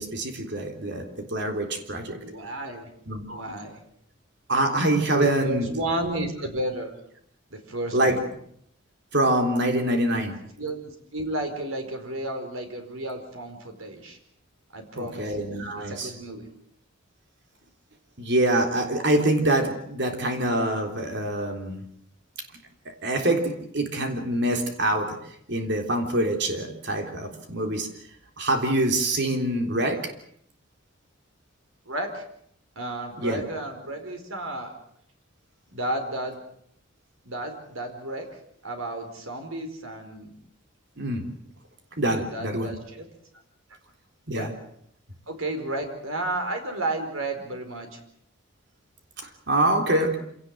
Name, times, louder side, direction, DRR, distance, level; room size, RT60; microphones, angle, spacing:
voice 1, 0.0-2.2 3.1-3.5 4.5-5.7 7.9-8.2 9.1-10.4 15.0-16.1 18.2-21.8 22.9-25.2 25.5-27.9 28.4-30.1 33.2-33.4 41.0-41.2 42.0-42.7 44.3-44.5 49.2-50.2, right 1 dB, 55° right, 4 dB, 3.7 m, -25 dB
voice 2, 2.1-2.9 3.3-3.8 5.2-6.9 7.5-8.3 10.6-14.2 14.7-15.4 15.9-16.5 31.8-32.2 32.8-34.7 35.7-36.4 37.2-38.2 38.6-40.4 42.1-43.1 44.3-44.5 45.3-48.0 49.9-50.2, right 1 dB, 85° right, 5 dB, 4.7 m, -32 dB
26.5 x 18.0 x 7.7 m, 0.68 s
head